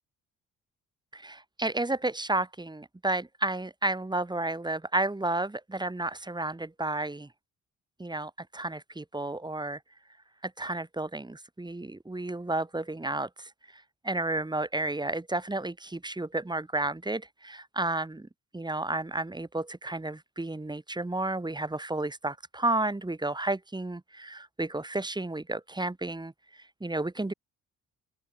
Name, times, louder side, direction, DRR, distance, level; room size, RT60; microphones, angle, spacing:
voice 1, 1.1-7.3 8.0-9.8 10.4-13.5 14.0-18.3 18.5-26.3 26.8-27.3, right 2 dB, 15° right, 7.0 m, -32 dB
open air
cardioid pair, 90°, 30 cm